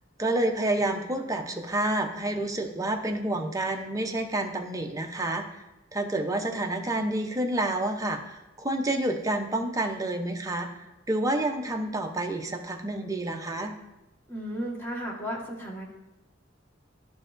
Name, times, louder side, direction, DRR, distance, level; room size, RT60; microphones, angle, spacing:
voice 1, 0.2-5.6 5.9-10.7 11.1-13.7, right 1 dB, 15° right, 3 dB, 0.6 m, -29 dB
voice 2, 14.3-15.9, equal, 10° left, -3 dB, 1.4 m, -34 dB
12.0 x 4.7 x 2.5 m, 0.98 s
head